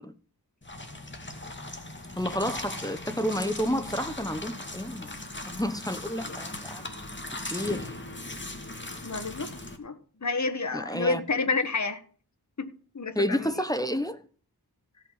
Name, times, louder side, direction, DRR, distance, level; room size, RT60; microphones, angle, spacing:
sound 1, 0.6-9.8, left 2 dB, 30° left, 2.2 m, -39 dB
voice 1, 2.2-5.1 5.5-6.8 7.5-7.9 10.7-11.2 13.1-14.2, equal, 10° left, 1.0 m, -30 dB
voice 2, 9.0-9.5 9.8-9.9 10.2-12.0 12.6-13.5, left 3 dB, 45° left, 1.4 m, -30 dB
16.5 x 5.9 x 5.7 m
wide cardioid pair, 65°, 38 cm